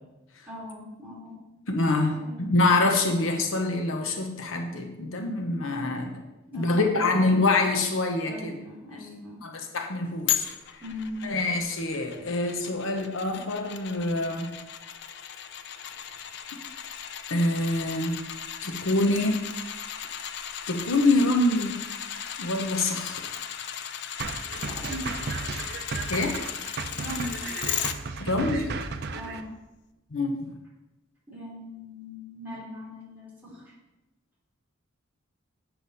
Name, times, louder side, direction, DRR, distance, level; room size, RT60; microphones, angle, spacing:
voice 1, 0.5-1.4 2.1-2.6 6.5-7.4 8.2-9.4 10.8-11.3 24.6-25.2 27.0-27.4 29.1-29.5 31.3-33.8, left 1 dB, 10° right, -7 dB, 2.9 m, -39 dB
voice 2, 1.7-6.2 6.5-8.5 9.4-10.5 11.2-14.5 17.3-18.2 18.6-19.4 20.7-21.8 22.4-23.3 26.1-26.4 28.2-28.7 30.1-30.3, left 2 dB, 75° left, 4 dB, 0.9 m, -25 dB
sound 1, 10.3-27.9 28.4-28.5, left 9 dB, 55° left, 0.4 m, -36 dB
sound 2, 24.2-29.4, right 4 dB, 50° right, 0.6 m, -34 dB
8.1 x 6.0 x 4.1 m, 1.0 s
head